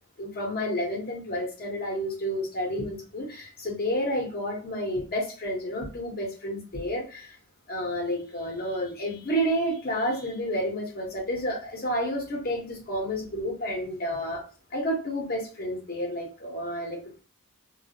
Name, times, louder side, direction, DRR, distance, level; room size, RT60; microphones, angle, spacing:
voice 1, 0.2-7.4 7.7-14.4 14.7-17.2, equal, 45° left, 0 dB, 0.9 m, -30 dB
2.3 x 2.0 x 2.8 m, 0.37 s
head